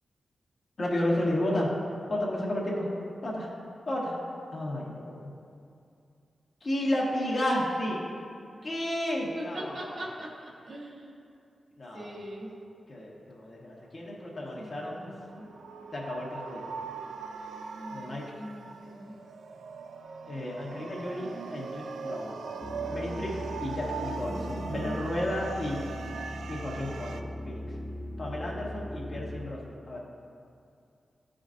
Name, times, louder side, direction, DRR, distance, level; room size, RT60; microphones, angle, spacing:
voice 1, 0.8-1.7 2.1-2.9 3.2-3.5 3.9-4.1 4.5-5.3 6.6-8.0 8.6-10.0 11.8-12.1 12.9-15.0 15.9-16.7 17.9-18.2 20.3-22.4 22.9-23.3 23.6-25.8 26.5-27.6 28.2-30.0, left 1 dB, 45° left, -4 dB, 1.4 m, -32 dB
voice 2, 9.3-11.2 11.9-12.5 14.6-15.5 17.7-19.2 24.2-26.2, right 1 dB, 65° right, -4 dB, 1.3 m, -42 dB
sound 1, 14.9-27.2, right 5 dB, 85° right, 0.3 m, -40 dB
sound 2, 22.6-29.4, left 1 dB, 10° left, 0.5 m, -39 dB
13.0 x 5.0 x 2.6 m, 2.5 s
wide cardioid pair, 120°, 0 cm